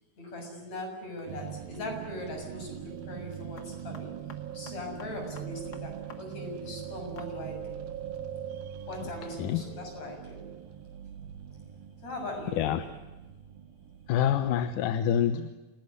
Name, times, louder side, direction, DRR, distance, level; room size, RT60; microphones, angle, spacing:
voice 1, 0.2-4.1 4.5-7.8 8.9-10.4 12.0-12.7, left 1 dB, 50° left, 3 dB, 8.1 m, -40 dB
sound 1, 1.2-1.5 3.5-6.2 6.5-6.6 7.2-7.3, left 5 dB, 35° left, 2.1 m, -49 dB
sound 2, 1.3-14.7, right 9 dB, 85° right, 3.3 m, -42 dB
voice 2, 14.1-15.5, left 9 dB, 70° left, 11 dB, 2.4 m, -26 dB
28.5 x 18.5 x 9.9 m, 1.2 s
omnidirectional pair, 4.1 m